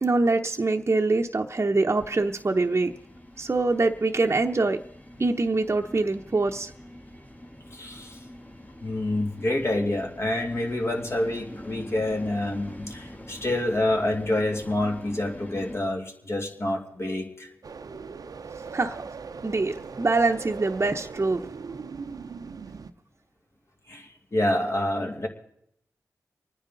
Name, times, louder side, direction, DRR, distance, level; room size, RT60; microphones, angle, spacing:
voice 1, 0.0-2.9 3.4-4.8 5.2-6.7 18.7-19.0 19.4-21.4, right 3 dB, 40° right, 2 dB, 0.9 m, -24 dB
sound 1, 1.9-15.8, left 1 dB, 25° left, 1.8 m, -44 dB
voice 2, 7.7-8.2 8.8-17.5 23.9-25.3, left 1 dB, 45° left, 2 dB, 2.6 m, -27 dB
sound 2, 17.6-22.9, right 5 dB, 70° right, 0.7 m, -40 dB
26.0 x 9.8 x 4.0 m, 0.73 s
cardioid pair, 55°, 6 cm